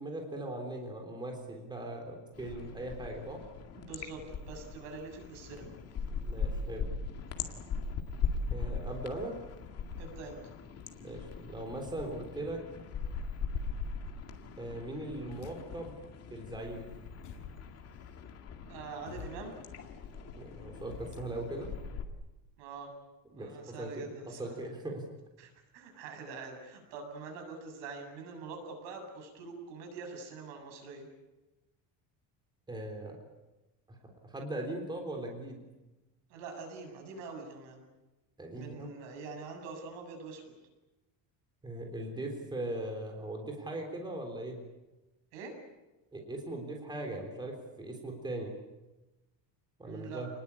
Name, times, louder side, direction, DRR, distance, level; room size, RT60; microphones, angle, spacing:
voice 1, 0.0-3.4 6.2-6.9 8.5-9.4 11.0-12.6 14.6-15.9 16.3-16.9 20.4-21.7 23.3-25.0 32.7-33.2 33.9-34.0 34.2-35.6 38.4-38.9 41.6-44.6 46.1-48.5 49.8-50.3, right 1 dB, 10° right, 2 dB, 3.7 m, -39 dB
sound 1, 2.3-22.0, left 5 dB, 35° left, 2.2 m, -40 dB
voice 2, 3.8-5.7 10.0-10.4 18.7-19.5 22.6-22.9 23.3-24.5 25.4-31.1 36.3-37.8 38.5-40.4 45.3-45.6 49.8-50.2, right 4 dB, 70° right, 4 dB, 7.7 m, -44 dB
sound 2, 15.1-16.0 16.4-21.7, left 5 dB, 65° left, 6.0 m, -52 dB
29.0 x 20.5 x 8.5 m, 1.1 s
cardioid pair, 175°, 44 cm